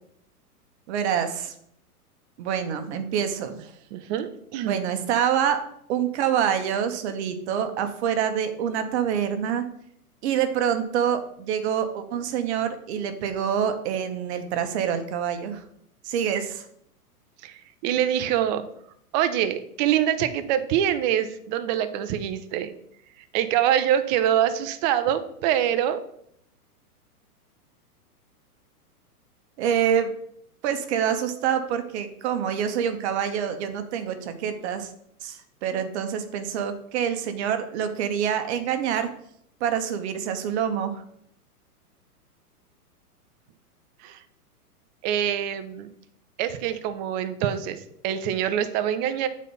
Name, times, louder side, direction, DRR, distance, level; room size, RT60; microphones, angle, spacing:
voice 1, 0.9-1.5 2.4-3.5 4.6-5.6 5.9-9.7 10.2-15.6 16.0-16.6 29.6-30.1 30.6-34.9 35.2-39.1 39.6-41.0, right 8 dB, 45° right, 8 dB, 1.1 m, -26 dB
voice 2, 3.9-4.8 17.4-18.7 19.1-22.7 23.2-26.0 44.0-44.2 45.0-45.9 46.4-49.3, right 10 dB, 30° right, 10 dB, 0.6 m, -25 dB
8.2 x 4.2 x 5.3 m, 0.71 s
hypercardioid pair, 125°, 46 cm